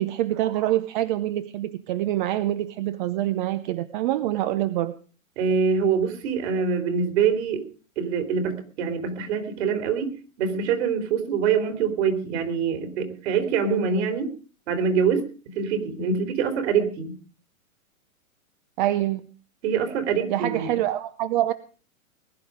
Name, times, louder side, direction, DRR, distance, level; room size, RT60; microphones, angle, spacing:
voice 1, 0.0-4.9 18.8-19.2 20.3-21.5, right 13 dB, 35° right, 13 dB, 0.8 m, -25 dB
voice 2, 5.4-7.6 8.0-10.1 10.4-14.3 14.7-17.1 19.6-20.7, right 6 dB, 50° right, 8 dB, 3.9 m, -24 dB
20.0 x 11.0 x 5.1 m, 0.39 s
hypercardioid pair, 140°, 41 cm